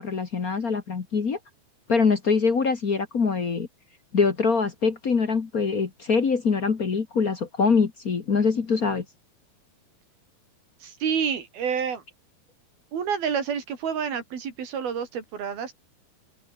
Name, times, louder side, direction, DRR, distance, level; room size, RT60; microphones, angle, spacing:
voice 1, 0.0-1.4 1.9-3.7 4.1-9.0, left 5 dB, 55° left, 0.9 m, -23 dB
voice 2, 10.8-12.0 12.9-15.7, right 7 dB, 75° right, 5.4 m, -28 dB
open air
omnidirectional pair, 4.4 m